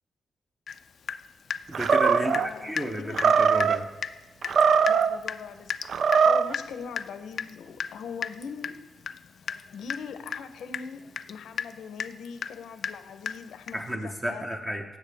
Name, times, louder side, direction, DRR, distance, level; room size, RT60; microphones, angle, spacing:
Water tap faucet / Drip, 0.7-0.8 1.1-2.5 2.8-2.9 3.2-3.3 3.6-3.7 4.0-4.2 4.4-13.9, left 7 dB, 55° left, 0.3 m, -35 dB
voice 1, 1.7-3.9 13.7-14.8, equal, 15° right, 3 dB, 0.7 m, -32 dB
Animal, 1.7-2.5 3.1-3.8 4.4-5.2 5.9-6.5, right 6 dB, 55° right, 0.3 m, -21 dB
voice 2, 2.2-3.2 4.9-5.7 6.2-8.8 9.7-14.5, left 6 dB, 90° left, 10 dB, 0.8 m, -41 dB
17.0 x 7.4 x 3.4 m, 1.2 s
wide cardioid pair, 140°, 0 cm